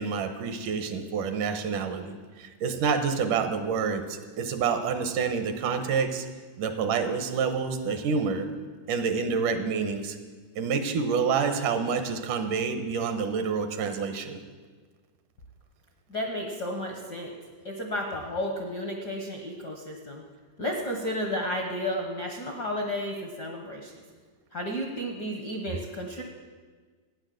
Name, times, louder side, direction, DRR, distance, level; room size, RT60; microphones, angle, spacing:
voice 1, 0.0-6.3 6.6-8.5 8.9-10.2 10.6-14.4, right 5 dB, 75° right, 8 dB, 2.5 m, -28 dB
voice 2, 16.1-17.3 17.6-20.2 20.6-24.0 24.5-26.2, equal, 55° left, 1 dB, 1.1 m, -32 dB
14.0 x 9.6 x 7.7 m, 1.5 s
omnidirectional pair, 3.8 m